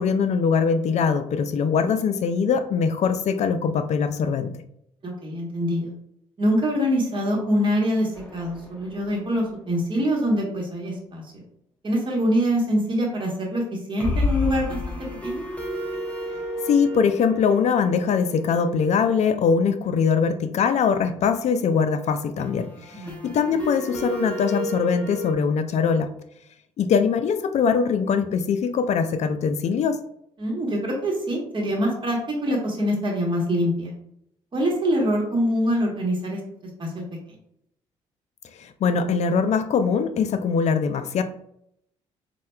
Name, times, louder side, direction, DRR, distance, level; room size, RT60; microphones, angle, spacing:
voice 1, 0.0-4.5 16.7-26.1 26.8-30.0 38.6-41.2, left 6 dB, 50° left, 10 dB, 0.4 m, -22 dB
voice 2, 5.0-5.9 6.4-11.4 11.8-15.0 15.2-15.4 22.9-23.2 30.4-33.9 34.5-36.4 36.8-36.9, equal, 30° right, -2 dB, 1.0 m, -24 dB
sound 1, 8.1-9.3 9.6-9.7 10.0-10.1 14.0-19.7 22.4-25.3, left 1 dB, 10° left, 0.8 m, -32 dB
4.2 x 2.2 x 2.2 m, 0.74 s
hypercardioid pair, 55°, 15 cm